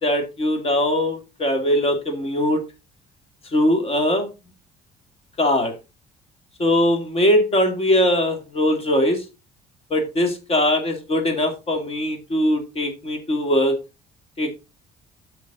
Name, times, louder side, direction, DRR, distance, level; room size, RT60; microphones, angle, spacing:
voice 1, 0.0-2.6 3.5-4.3 5.4-5.7 6.6-9.2 9.9-13.8 14.4-14.5, left 1 dB, 35° left, 6 dB, 2.5 m, -21 dB
8.5 x 6.0 x 4.0 m, 0.28 s
cardioid pair, 110°, 17 cm